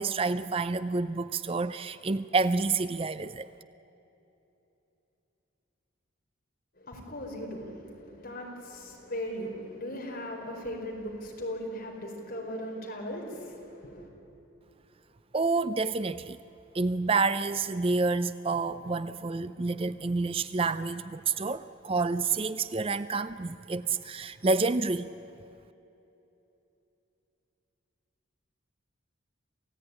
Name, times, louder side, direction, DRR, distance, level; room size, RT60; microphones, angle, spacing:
voice 1, 0.0-3.5 15.3-16.4 16.7-25.1, right 3 dB, 30° right, 13 dB, 0.4 m, -28 dB
voice 2, 6.7-14.1, equal, 50° left, 0 dB, 4.9 m, -38 dB
28.0 x 16.5 x 9.9 m, 3.0 s
head